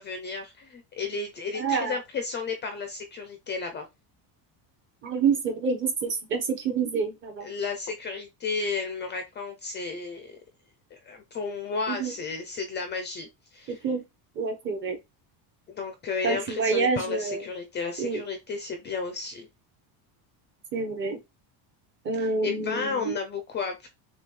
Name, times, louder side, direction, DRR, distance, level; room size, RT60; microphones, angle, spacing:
voice 1, 0.0-3.8 7.4-10.4 10.9-13.8 15.7-19.5 22.2-23.9, left 4 dB, 25° left, 0.5 m, -33 dB
voice 2, 1.5-1.9 5.0-7.5 11.9-12.1 13.7-14.0 14.4-15.0 16.2-17.4 18.0-18.2 20.7-21.2 22.0-23.1, right 5 dB, 25° right, 0.9 m, -27 dB
6.7 x 2.4 x 3.1 m
cardioid pair, 175°, 45 cm